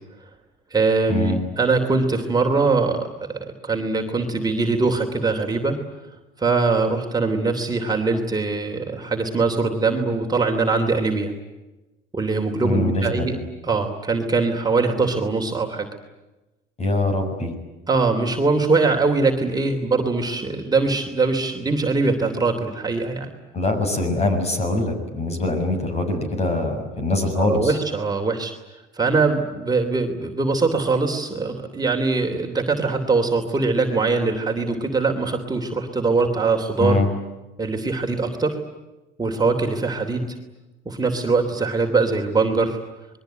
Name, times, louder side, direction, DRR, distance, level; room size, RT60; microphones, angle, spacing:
voice 1, 0.7-5.8 6.4-11.3 12.1-13.4 13.6-15.9 17.9-23.3 27.3-28.5 28.9-37.0 37.6-38.6 39.2-40.2 40.8-42.8, right 3 dB, 20° right, 2 dB, 3.1 m, -22 dB
voice 2, 12.6-13.4 16.8-17.5 23.5-27.7 36.8-37.1, left 2 dB, 30° left, 6 dB, 7.0 m, -23 dB
27.5 x 22.0 x 9.2 m, 1.1 s
cardioid pair, 120°, 21 cm